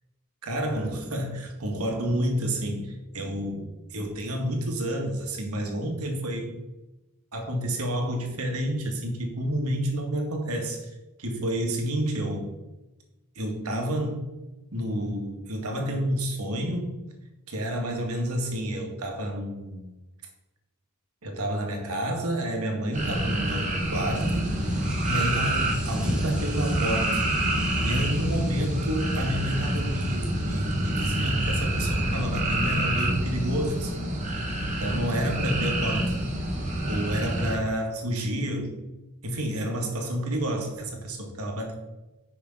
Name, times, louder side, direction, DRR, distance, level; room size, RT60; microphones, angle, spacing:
voice 1, 0.4-6.5 7.3-10.9 11.2-12.5 13.4-14.2 14.7-17.0 17.5-19.9 21.2-24.6 25.0-27.2 27.8-34.0 34.6-36.1 36.8-38.8 39.2-41.7, right 1 dB, 80° right, 2 dB, 1.9 m, -30 dB
sound 1, 22.9-37.6, right 1 dB, 35° right, 1.5 m, -27 dB
sound 2, 24.2-33.1, equal, 5° right, 1.1 m, -36 dB
9.9 x 5.8 x 3.8 m, 1.0 s
head